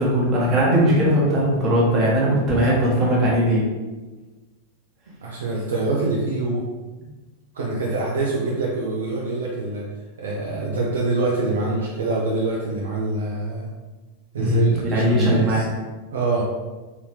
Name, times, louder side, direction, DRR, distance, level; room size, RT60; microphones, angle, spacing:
voice 1, 0.0-3.6 14.4-15.6, equal, 25° right, -5 dB, 1.4 m, -19 dB
voice 2, 5.1-6.6 7.5-9.8 10.2-13.7 14.3-15.6 16.1-16.4, right 2 dB, 65° right, -4 dB, 0.6 m, -25 dB
3.8 x 2.9 x 3.2 m, 1.2 s
figure-of-eight pair, 90°, 0 cm